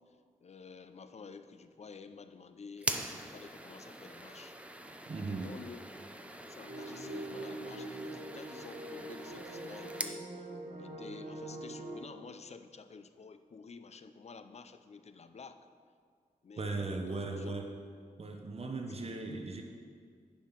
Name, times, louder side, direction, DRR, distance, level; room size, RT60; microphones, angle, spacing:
voice 1, 0.4-4.5 5.1-6.0 6.5-10.5 10.8-15.7 16.4-17.5 18.9-19.1, left 5 dB, 45° left, 10 dB, 0.6 m, -51 dB
sound 1, 2.8-10.2, right 1 dB, 10° right, 0.6 m, -43 dB
voice 2, 5.1-5.5 16.6-17.7 18.2-19.6, right 3 dB, 45° right, 3 dB, 0.9 m, -37 dB
sound 2, 6.6-12.0, right 2 dB, 80° right, 1.3 m, -44 dB
10.0 x 5.6 x 6.0 m, 2.1 s
wide cardioid pair, 95°, 15 cm